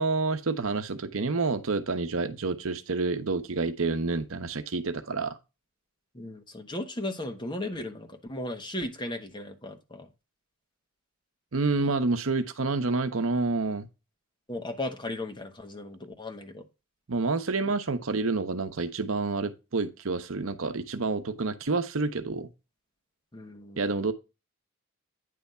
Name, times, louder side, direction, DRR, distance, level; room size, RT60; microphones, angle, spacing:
voice 1, 0.0-5.4 11.5-13.9 17.1-22.5 23.8-24.1, right 3 dB, 70° right, 0.9 m, -28 dB
voice 2, 6.1-10.1 14.5-16.6 23.3-23.8, left 1 dB, 20° left, 1.1 m, -36 dB
9.4 x 3.5 x 5.4 m
head